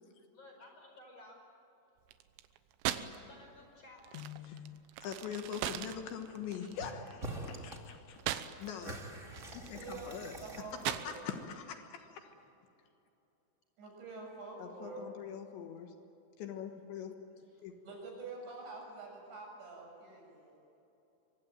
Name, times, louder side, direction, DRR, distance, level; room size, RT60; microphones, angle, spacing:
voice 1, 0.3-1.4 3.1-4.0 17.4-17.6, left 2 dB, 30° left, 1 dB, 5.7 m, -55 dB
sound 1, 2.1-3.2 3.5-8.9 9.2-11.6, right 13 dB, 85° right, 3.6 m, -40 dB
voice 2, 4.1-4.6 5.0-9.0 9.5-10.3 10.9-12.3 14.6-15.9 16.4-17.7, left 8 dB, 70° left, 5 dB, 3.4 m, -43 dB
sound 2, 6.7-6.9 7.2-7.8 8.2-11.5, right 2 dB, 25° right, 1.5 m, -46 dB
voice 3, 10.4-11.3 13.8-15.1 17.8-20.6, right 3 dB, 65° right, -1 dB, 9.1 m, -47 dB
24.5 x 24.0 x 9.1 m, 2.9 s
omnidirectional pair, 5.6 m